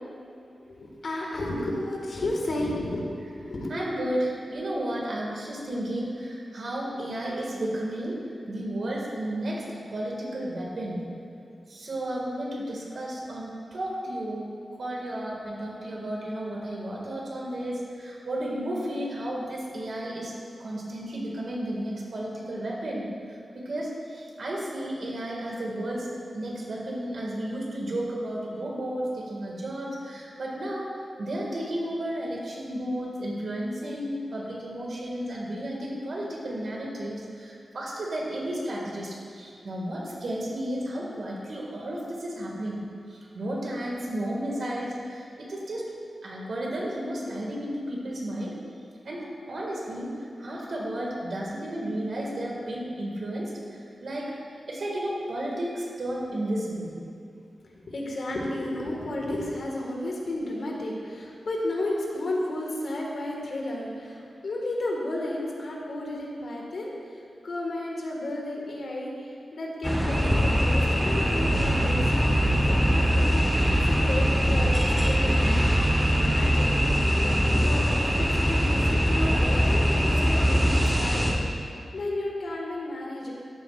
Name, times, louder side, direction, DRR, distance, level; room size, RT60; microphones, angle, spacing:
voice 1, 0.6-3.7 57.8-67.1 67.4-75.6 76.0-76.8 77.2-83.3, left 1 dB, 65° left, -2 dB, 1.6 m, -33 dB
voice 2, 3.7-8.2 8.5-11.0 11.7-14.4 14.8-20.3 20.6-23.1 23.5-26.1 26.3-30.9 31.2-42.8 43.1-45.9 46.2-48.5 49.0-54.4 54.7-56.9, right 1 dB, 60° right, -3 dB, 1.9 m, -33 dB
sound 1, 69.8-81.3, equal, 5° right, 1.0 m, -22 dB
13.5 x 7.9 x 2.4 m, 2.4 s
wide cardioid pair, 120°, 0 cm